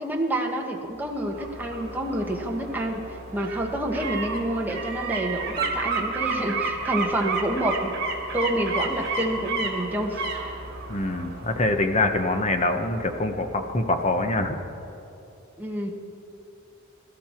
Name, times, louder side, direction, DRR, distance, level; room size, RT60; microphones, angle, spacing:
voice 1, 0.0-7.9 8.3-10.2 15.6-15.9, right 1 dB, 10° right, 0 dB, 1.4 m, -28 dB
sound 1, 1.1-13.9 14.2-14.3, right 3 dB, 50° right, 2.4 m, -32 dB
voice 2, 10.9-14.6, left 2 dB, 35° left, 6 dB, 1.0 m, -24 dB
21.5 x 13.0 x 4.5 m, 2.9 s
head